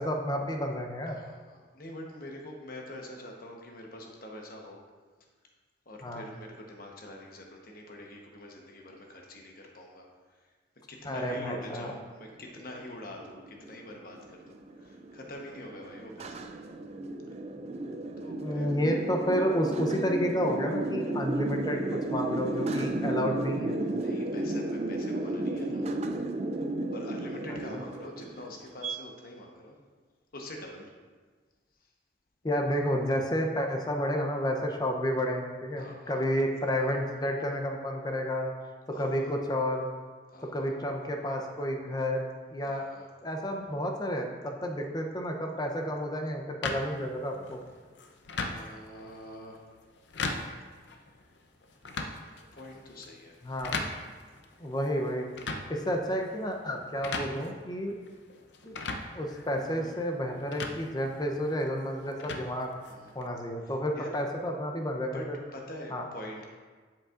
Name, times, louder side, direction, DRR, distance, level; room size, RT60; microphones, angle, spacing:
voice 1, 0.0-1.2 6.0-6.2 11.1-11.9 18.4-23.8 27.5-27.6 32.4-38.5 39.0-39.9 40.4-42.8 43.2-47.6 53.4-53.8 54.6-55.3 55.7-58.0 58.6-58.8 59.1-62.7 63.1-65.2 65.9-66.0, equal, 20° left, 2 dB, 0.6 m, -31 dB
voice 2, 1.1-4.8 5.9-10.5 10.9-16.5 18.2-18.7 23.9-26.0 26.9-29.8 30.3-30.9 31.8-31.9 35.8-36.3 38.9-39.3 40.3-40.7 42.6-43.1 48.5-49.6 50.7-51.1 52.5-53.4 62.8-63.1 63.6-64.1 65.1-65.3 65.5-66.4, left 1 dB, 50° left, 1 dB, 1.0 m, -45 dB
sound 1, 12.6-29.0, right 2 dB, 35° right, 0.4 m, -34 dB
sound 2, 46.6-63.3, left 3 dB, 75° left, 0.6 m, -40 dB
7.8 x 7.3 x 2.5 m, 1.5 s
head